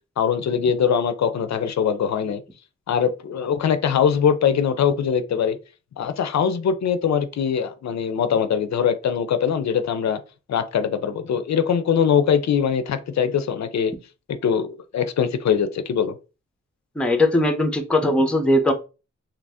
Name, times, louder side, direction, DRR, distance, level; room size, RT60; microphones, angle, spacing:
voice 1, 0.2-2.4 2.9-5.6 6.0-10.2 10.5-13.9 14.3-16.1, left 7 dB, 65° left, 0.4 m, -22 dB
voice 2, 17.0-18.7, left 1 dB, 5° left, 0.4 m, -19 dB
2.9 x 2.6 x 3.4 m
wide cardioid pair, 170°, 29 cm